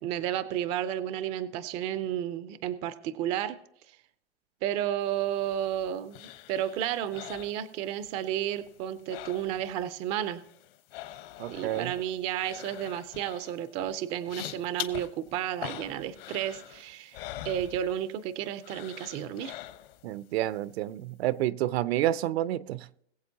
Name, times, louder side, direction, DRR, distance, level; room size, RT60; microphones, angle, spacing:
voice 1, 0.0-3.6 4.6-10.4 11.5-17.2 17.4-19.5, right 11 dB, 20° right, 0.3 m, -32 dB
sound 1, 5.2-8.2 8.5-9.8 10.1-18.3 18.6-20.1 20.5-20.6, left 14 dB, 60° left, 1.0 m, -44 dB
voice 2, 11.4-11.9 20.0-22.9, right 13 dB, 70° right, 0.6 m, -29 dB
21.5 x 7.6 x 2.8 m
supercardioid pair, 150°, 32 cm